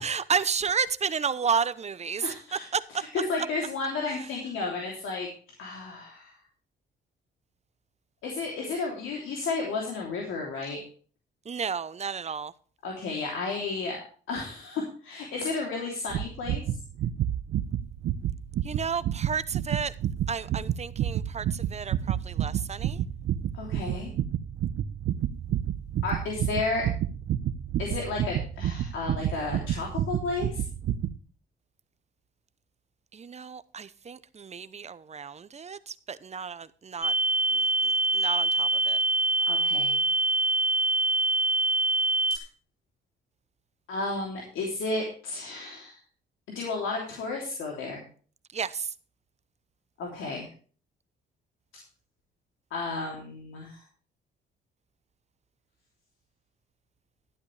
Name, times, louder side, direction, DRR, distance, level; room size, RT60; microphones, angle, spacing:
voice 1, 0.0-3.0 11.5-12.5 18.6-19.9 20.3-23.0 33.1-37.1 37.5-39.0 48.5-48.9, right 6 dB, 35° right, 0.8 m, -32 dB
voice 2, 2.2-2.7 2.9-5.3 5.6-6.4 8.2-10.8 12.8-14.0 14.3-16.6 23.5-24.1 26.0-26.9 27.8-30.6 39.5-40.0 42.3-42.4 43.9-46.0 46.5-48.0 50.0-50.5 52.7-53.8, left 3 dB, 80° left, 3.2 m, -32 dB
sound 1, 16.1-31.2, right 10 dB, 75° right, 0.9 m, -30 dB
sound 2, 37.0-42.4, right 2 dB, 10° right, 1.2 m, -25 dB
12.0 x 11.0 x 3.3 m
cardioid pair, 90°, 20 cm